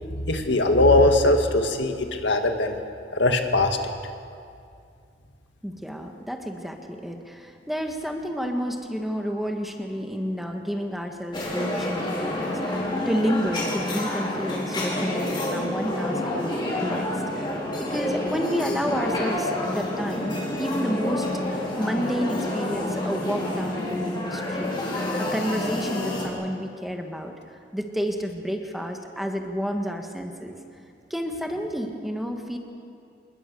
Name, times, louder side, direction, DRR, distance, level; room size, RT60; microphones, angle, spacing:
voice 1, 0.2-2.8 3.1-3.9, left 2 dB, 85° left, 5 dB, 2.0 m, -20 dB
voice 2, 5.6-17.5 17.8-30.5 31.1-32.6, equal, ahead, 3 dB, 1.5 m, -30 dB
sound 1, 11.3-26.3, left 1 dB, 25° left, 4.9 m, -28 dB
26.5 x 20.5 x 7.0 m, 2.4 s
head